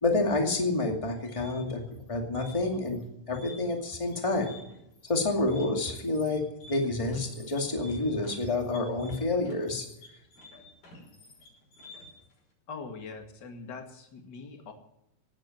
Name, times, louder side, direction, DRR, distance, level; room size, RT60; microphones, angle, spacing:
voice 1, 0.0-3.0 3.3-4.6 5.1-9.9, left 2 dB, 10° left, 2 dB, 1.9 m, -28 dB
sound 1, 1.0-12.3, left 2 dB, 90° left, 7.8 m, -51 dB
voice 2, 12.7-14.7, left 4 dB, 35° left, 5 dB, 2.2 m, -42 dB
18.0 x 9.0 x 7.8 m, 0.83 s
omnidirectional pair, 3.9 m